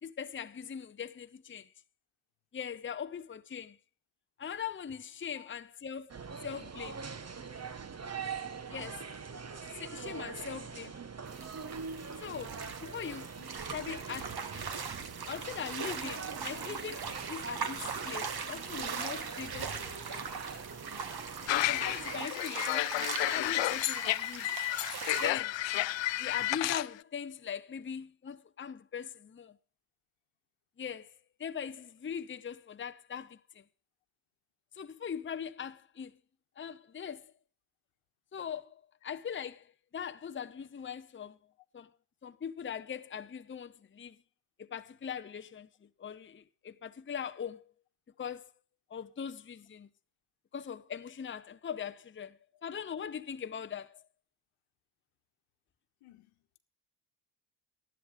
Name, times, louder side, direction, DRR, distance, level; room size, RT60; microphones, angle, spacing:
voice 1, 0.0-1.7 2.5-3.8 4.4-6.1 6.4-7.0 8.7-9.1 9.7-11.0 12.2-14.7 15.3-20.6 21.4-24.5 25.2-25.7 26.2-29.6 30.8-31.1 31.4-33.6 34.7-36.2 36.6-37.3 38.3-41.4 41.7-41.9 42.2-44.2 44.6-47.7 48.2-48.5 48.9-49.9 50.5-54.0, left 7 dB, 25° left, 0.8 m, -41 dB
voice 2, 5.3-5.6 52.5-52.6 56.0-56.6, left 12 dB, 85° left, 1.5 m, -59 dB
sound 1, 6.1-22.3, right 5 dB, 30° right, 1.2 m, -43 dB
sound 2, 11.3-25.3, right 6 dB, 50° right, 1.7 m, -40 dB
sound 3, 21.5-26.9, left 16 dB, 65° left, 0.6 m, -31 dB
12.5 x 11.5 x 5.1 m
supercardioid pair, 65°, 50 cm